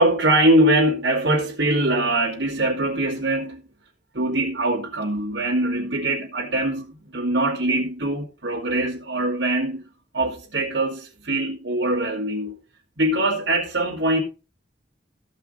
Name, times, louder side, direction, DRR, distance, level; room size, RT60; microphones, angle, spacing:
voice 1, 0.0-3.6 4.1-9.8 10.1-12.6 13.0-14.2, right 1 dB, 70° right, 2.6 m, -22 dB
14.5 x 5.6 x 5.4 m
head